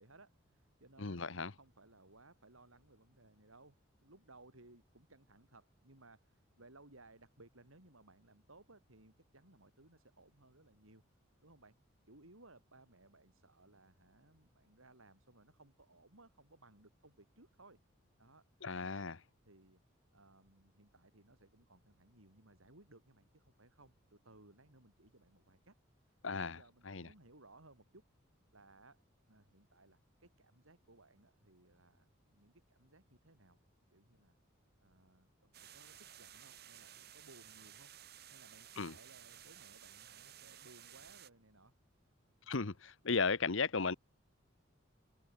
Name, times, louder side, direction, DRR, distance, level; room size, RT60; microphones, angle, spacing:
voice 1, 0.0-11.0 11.4-11.7 12.1-17.8 18.2-18.4 19.4-19.8 20.1-28.0 28.5-33.6 33.9-34.3 34.8-37.9 38.3-42.1 42.4-42.5, right 2 dB, 90° right, 5.7 m, -63 dB
voice 2, 1.0-1.5 18.6-19.2 26.2-26.6 26.8-27.1 38.8-38.9 42.5-43.9, left 4 dB, 70° left, 1.1 m, -35 dB
sound 1, 35.5-41.3, right 10 dB, 50° right, 4.4 m, -56 dB
head